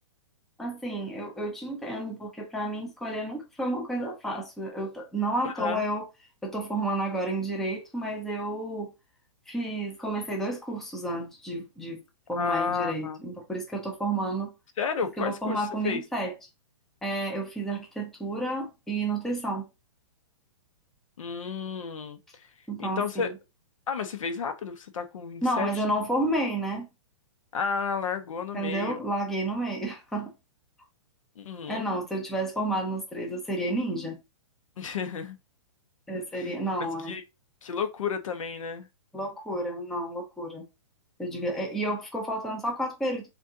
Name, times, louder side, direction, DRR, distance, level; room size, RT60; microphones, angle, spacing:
voice 1, 0.6-6.1 6.4-8.9 9.5-12.0 12.3-14.5 15.2-16.3 17.0-19.7 22.7-23.3 25.4-26.9 28.5-30.3 31.7-34.2 36.1-37.1 39.1-40.6 41.2-43.3, right 1 dB, ahead, 0.5 m, -31 dB
voice 2, 5.4-5.9 12.4-13.2 14.8-16.0 21.2-22.5 22.8-23.3 23.9-25.8 27.5-29.0 31.4-31.9 34.8-35.4 36.3-37.2 37.6-38.9, left 6 dB, 80° left, 0.9 m, -32 dB
6.0 x 2.5 x 2.7 m
hypercardioid pair, 170°, 17 cm